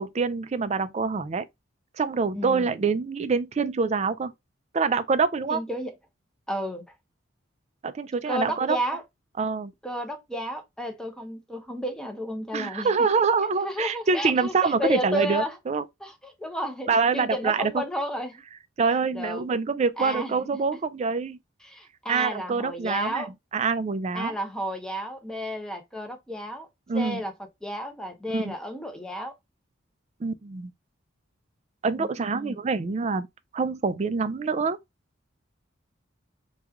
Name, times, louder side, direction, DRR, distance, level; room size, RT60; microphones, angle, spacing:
voice 1, 0.0-1.4 2.0-4.3 4.7-5.6 7.8-8.8 9.4-9.7 12.5-15.8 16.9-17.8 18.8-21.4 22.1-23.2 23.5-24.4 26.9-27.2 28.3-28.5 30.2-30.7 31.8-33.3 33.5-34.8, right 4 dB, 35° right, 0.3 m, -25 dB
voice 2, 2.4-2.8 5.5-5.9 6.5-6.8 8.3-9.0 9.8-12.9 13.6-15.6 16.0-18.4 19.1-19.4 20.0-20.3 21.6-23.3 24.1-26.7 26.9-27.3 27.6-29.3 32.0-32.6, equal, 5° left, 0.6 m, -32 dB
3.0 x 2.3 x 3.5 m
head